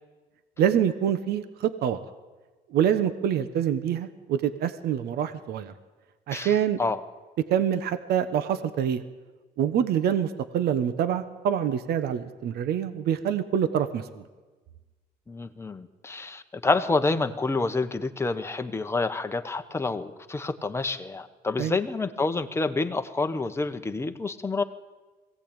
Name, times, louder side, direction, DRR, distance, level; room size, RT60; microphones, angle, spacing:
voice 1, 0.6-2.0 2.7-5.7 6.3-6.8 7.5-9.0 9.6-14.2 21.6-21.8, right 9 dB, 70° right, 12 dB, 1.3 m, -26 dB
voice 2, 6.3-7.0 15.3-24.6, left 3 dB, 15° left, 7 dB, 1.3 m, -28 dB
21.5 x 17.0 x 8.9 m, 1.3 s
cardioid pair, 110°, 17 cm